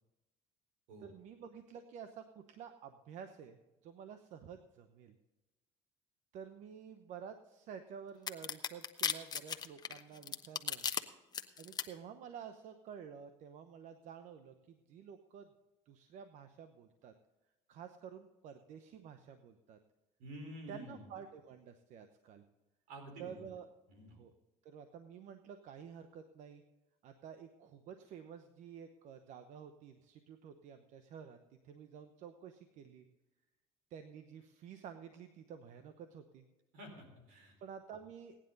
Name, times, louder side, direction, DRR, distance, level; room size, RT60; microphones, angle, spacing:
voice 1, 1.0-5.1 6.3-10.9 11.6-15.5 15.9-17.1 17.7-19.8 20.7-22.4 23.2-23.7 24.1-24.3 24.6-26.6 27.0-31.4 31.6-33.1 33.9-36.4 37.6-38.4, right 7 dB, 60° right, 9 dB, 0.9 m, -51 dB
sound 1, 8.3-11.0 11.3-11.8, left 6 dB, 30° left, 0.9 m, -35 dB
voice 2, 20.2-21.1 22.9-23.5 23.9-24.2 36.7-37.5, right 1 dB, 85° right, 3 dB, 4.4 m, -49 dB
17.0 x 10.0 x 4.0 m, 1.1 s
supercardioid pair, 95°, 14 cm